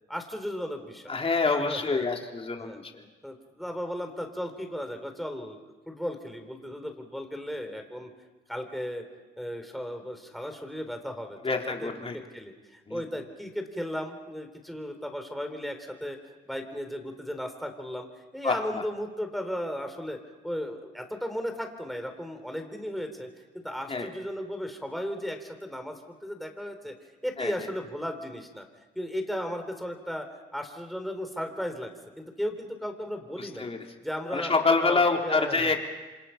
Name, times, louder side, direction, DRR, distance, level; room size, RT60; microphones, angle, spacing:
voice 1, 0.1-1.1 1.5-2.1 2.6-2.8 3.2-5.6 5.9-8.1 8.5-9.0 9.4-16.2 16.5-18.1 18.3-20.2 20.4-23.3 23.5-26.9 27.2-28.6 28.9-30.3 30.5-31.9 32.2-33.7 34.0-34.5 34.8-35.7, equal, ahead, 5 dB, 4.1 m, -35 dB
voice 2, 1.1-3.1 11.4-12.2 12.9-13.0 18.4-18.6 23.9-24.1 27.4-27.5 33.4-33.8 34.3-35.9, left 4 dB, 30° left, 1 dB, 3.6 m, -26 dB
28.5 x 25.5 x 5.9 m, 1.2 s
cardioid pair, 90°, 20 cm